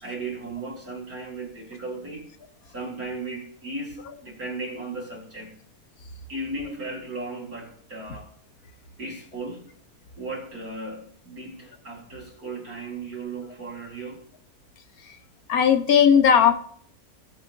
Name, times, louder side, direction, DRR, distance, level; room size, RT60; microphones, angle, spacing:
voice 1, 0.0-2.3 2.7-5.5 6.3-8.3 9.0-9.7 10.2-14.2, right 2 dB, 70° right, -2 dB, 3.1 m, -36 dB
voice 2, 15.5-16.5, left 8 dB, 70° left, 8 dB, 1.5 m, -17 dB
18.0 x 7.2 x 2.7 m, 0.62 s
omnidirectional pair, 1.6 m